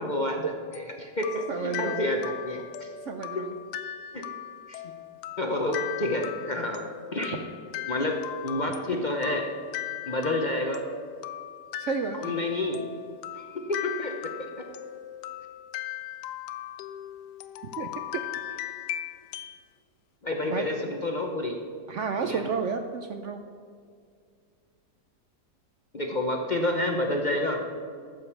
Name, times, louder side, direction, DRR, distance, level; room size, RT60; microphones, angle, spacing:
voice 1, 0.0-2.9 3.3-3.4 4.1-4.3 4.7-4.9 5.4-7.4 7.9-9.5 10.1-10.9 12.1-12.8 13.4-14.6 20.2-21.6 22.2-22.4 25.9-27.6, left 1 dB, 40° left, 2 dB, 0.7 m, -29 dB
sound 1, 0.7-19.6, left 12 dB, 90° left, 1.2 m, -38 dB
voice 2, 1.5-2.1 3.1-3.6 11.8-12.4 17.8-17.9 20.5-20.6 21.9-23.4, right 5 dB, 65° right, 6 dB, 0.8 m, -31 dB
13.5 x 5.2 x 7.2 m, 2.2 s
omnidirectional pair, 1.7 m